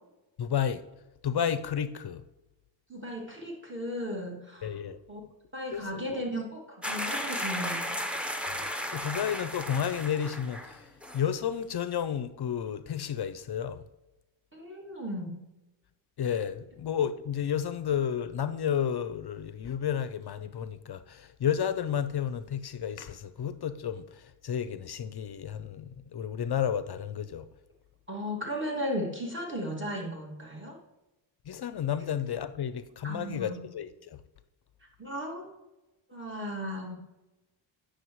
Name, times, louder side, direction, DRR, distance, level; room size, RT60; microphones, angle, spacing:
voice 1, 0.4-0.8 1.2-2.2 4.6-5.0 5.7-6.2 8.5-10.9 11.1-13.8 16.2-27.5 31.5-34.2, left 8 dB, 55° left, 0.5 m, -32 dB
voice 2, 2.9-4.8 5.1-5.2 5.5-8.0 14.5-15.4 28.1-30.8 33.0-33.6 35.0-35.5 36.1-37.0, equal, 25° right, 2.2 m, -35 dB
sound 1, 6.8-10.8 11.0-11.2, left 1 dB, ahead, 0.8 m, -34 dB
9.3 x 6.5 x 3.1 m
wide cardioid pair, 90°, 48 cm